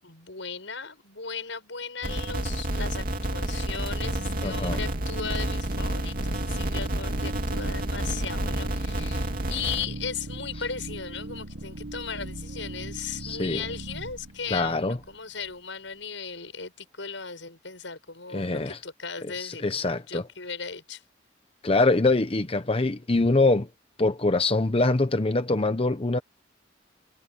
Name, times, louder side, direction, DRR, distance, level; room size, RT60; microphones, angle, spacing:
voice 1, 0.0-21.0, left 6 dB, 85° left, 6.9 m, -37 dB
sound 1, 2.0-9.9, right 1 dB, 50° right, 2.7 m, -30 dB
sound 2, 3.8-15.5, right 1 dB, 80° right, 1.6 m, -39 dB
voice 2, 4.4-4.8 13.2-13.6 14.5-15.0 18.3-18.8 19.4-20.2 21.6-23.7 24.0-26.2, left 2 dB, 30° left, 0.8 m, -24 dB
head